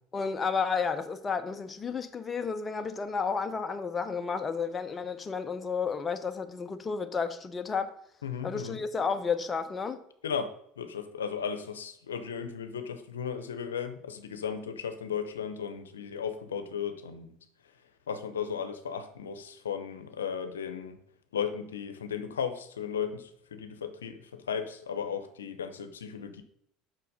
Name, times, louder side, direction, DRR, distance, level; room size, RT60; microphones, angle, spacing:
voice 1, 0.1-7.9 8.4-10.0, left 5 dB, 25° left, 0.9 m, -32 dB
voice 2, 8.2-8.8 10.2-10.5 10.8-17.4 18.1-21.0 21.3-26.4, left 7 dB, 90° left, 0.8 m, -35 dB
6.8 x 6.1 x 5.3 m
hypercardioid pair, 80°, 0 cm